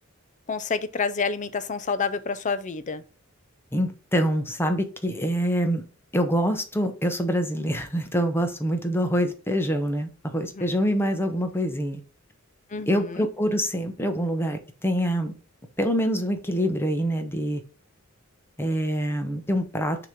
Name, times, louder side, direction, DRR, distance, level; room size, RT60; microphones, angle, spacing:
voice 1, 0.5-3.0 10.6-10.7 12.7-13.3, left 5 dB, 35° left, 0.5 m, -28 dB
voice 2, 3.7-5.8 6.1-12.0 12.9-15.3 15.8-17.6 18.6-20.0, equal, 10° left, 0.8 m, -25 dB
6.4 x 3.0 x 5.0 m
head